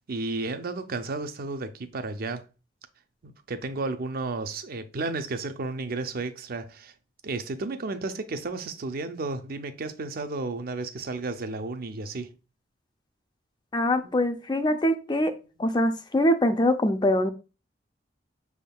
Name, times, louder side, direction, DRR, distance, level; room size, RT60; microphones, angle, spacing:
voice 1, 0.1-2.4 3.2-6.9 7.2-12.3, right 3 dB, 50° right, 0.5 m, -33 dB
voice 2, 13.7-15.3 15.6-17.3, left 1 dB, 25° left, 0.5 m, -23 dB
6.3 x 3.5 x 2.3 m
head